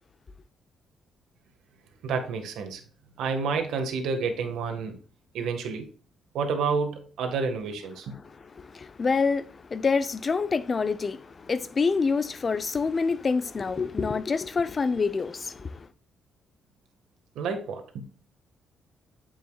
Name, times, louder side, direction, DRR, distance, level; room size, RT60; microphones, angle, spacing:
voice 1, 2.0-2.8 3.2-5.0 5.3-5.9 6.3-8.1 17.3-18.1, right 5 dB, 80° right, 1.7 m, -29 dB
voice 2, 8.6-15.7, left 4 dB, 35° left, 0.7 m, -27 dB
9.2 x 7.2 x 2.4 m
cardioid pair, 90°, 0 cm